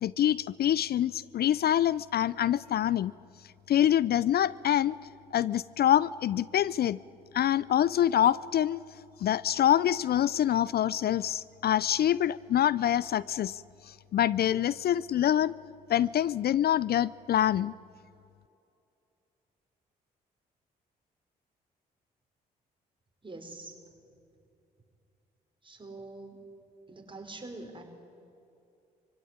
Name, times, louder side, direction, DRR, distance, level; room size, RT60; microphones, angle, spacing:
voice 1, 0.0-3.1 3.7-5.0 5.3-7.0 7.3-8.8 9.2-13.6 13.9-15.5 15.9-17.7, left 11 dB, 55° left, 21 dB, 0.4 m, -25 dB
voice 2, 23.2-23.8 25.6-26.4 26.9-27.8, right 2 dB, 25° right, 3 dB, 4.8 m, -44 dB
24.0 x 16.5 x 9.6 m, 2.6 s
supercardioid pair, 55°, 19 cm